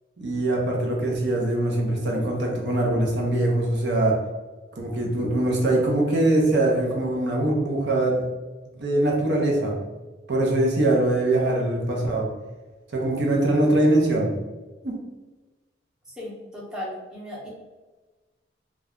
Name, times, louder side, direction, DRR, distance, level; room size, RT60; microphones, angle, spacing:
voice 1, 0.2-4.2 4.8-8.2 8.8-9.8 10.3-12.3 12.9-14.3 14.8-15.0, right 1 dB, 75° right, -1 dB, 0.7 m, -22 dB
voice 2, 16.2-17.5, left 1 dB, 5° right, -7 dB, 0.7 m, -36 dB
2.3 x 2.2 x 3.6 m, 1.2 s
head